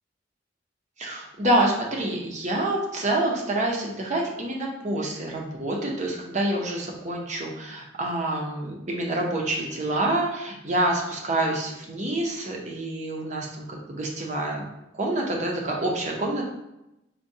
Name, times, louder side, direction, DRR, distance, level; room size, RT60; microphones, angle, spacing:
voice 1, 1.0-14.6 15.0-16.4, right 1 dB, 40° right, -1 dB, 0.6 m, -27 dB
4.5 x 2.2 x 2.7 m, 0.90 s
head